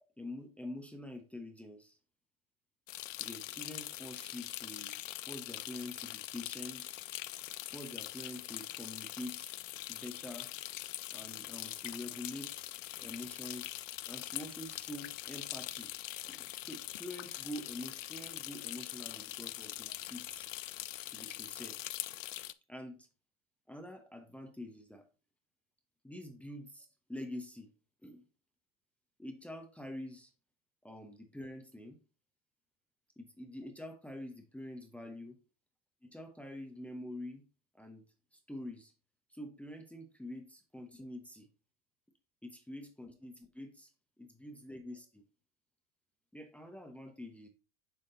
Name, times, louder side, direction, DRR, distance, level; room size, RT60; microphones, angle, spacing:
voice 1, 0.2-2.0 3.2-4.9 5.3-7.0 7.7-9.6 9.9-10.5 11.1-13.7 14.1-15.9 16.3-20.5 21.1-21.8 22.7-23.0 23.7-25.0 26.0-27.7 28.0-28.2 29.2-30.3 30.8-32.0 33.2-35.4 36.0-37.4 37.8-38.0 38.3-38.9 39.3-41.5 42.4-43.9 44.2-45.2 46.3-47.5, left 1 dB, 5° left, 4 dB, 1.0 m, -46 dB
sound 1, 2.9-22.5, left 15 dB, 80° left, 0.5 m, -43 dB
6.9 x 3.6 x 3.9 m, 0.33 s
hypercardioid pair, 85°, 38 cm